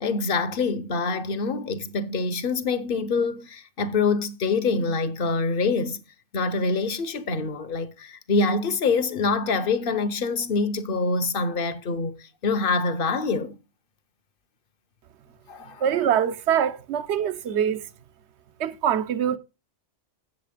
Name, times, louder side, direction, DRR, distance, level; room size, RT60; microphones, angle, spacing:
voice 1, 0.0-6.0 6.3-13.6 15.5-15.8, left 4 dB, 50° left, 0.9 m, -25 dB
voice 2, 15.8-17.9 18.6-19.4, right 9 dB, 65° right, 1.1 m, -24 dB
8.1 x 7.5 x 5.0 m
omnidirectional pair, 1.2 m